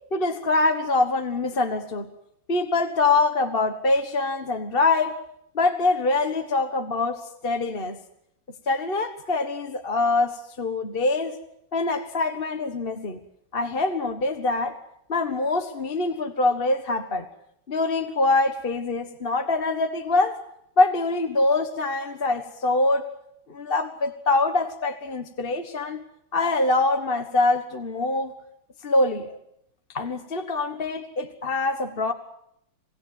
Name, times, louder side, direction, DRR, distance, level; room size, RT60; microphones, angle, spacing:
voice 1, 0.1-2.1 2.5-5.2 5.5-8.0 8.7-11.4 11.7-13.2 13.5-14.8 15.1-17.2 17.7-20.4 20.8-23.1 23.5-26.0 26.3-28.3 28.8-29.3 29.9-32.1, left 2 dB, 30° left, 7 dB, 1.4 m, -24 dB
27.5 x 17.5 x 9.5 m, 0.76 s
omnidirectional pair, 2.4 m